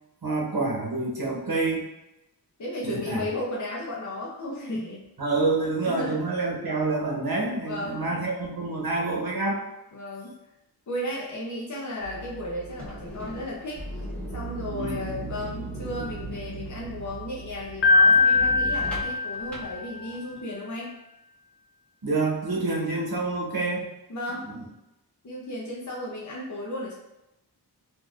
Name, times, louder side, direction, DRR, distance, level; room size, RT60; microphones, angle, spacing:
voice 1, 0.2-1.9 2.8-3.2 5.2-9.6 14.7-15.2 22.0-23.9 24.5-24.6, right 3 dB, 60° right, -2 dB, 0.9 m, -27 dB
voice 2, 2.6-5.0 5.8-6.2 7.6-8.1 9.9-10.3 10.9-13.8 14.3-20.9 24.1-24.5 25.2-26.9, left 1 dB, 45° left, -4 dB, 0.6 m, -34 dB
sound 1, 12.0-19.0, right 4 dB, 15° right, 1.1 m, -40 dB
sound 2, 12.7-20.4, left 1 dB, 5° left, 1.0 m, -42 dB
Piano, 17.8-19.9, left 4 dB, 85° left, 0.5 m, -21 dB
3.7 x 2.5 x 2.5 m, 0.91 s
wide cardioid pair, 50°, 41 cm